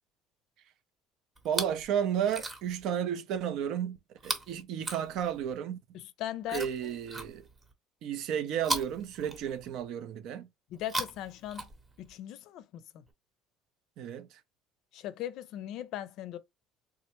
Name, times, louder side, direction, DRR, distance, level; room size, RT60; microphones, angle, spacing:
Chewing mastication, 1.4-1.9 2.2-2.9 4.2-5.6 6.5-7.7 8.6-9.9 10.7-12.1 13.1-13.2, right 2 dB, 25° right, 0.8 m, -38 dB
voice 1, 1.4-4.0 4.2-5.8 6.5-7.5 8.0-10.5 14.0-14.4, right 9 dB, 65° right, 0.5 m, -32 dB
voice 2, 5.9-6.7 10.7-11.7 12.0-12.7 12.9-13.0 14.9-16.4, left 12 dB, 65° left, 0.4 m, -38 dB
3.6 x 2.1 x 2.9 m
cardioid pair, 115°, 0 cm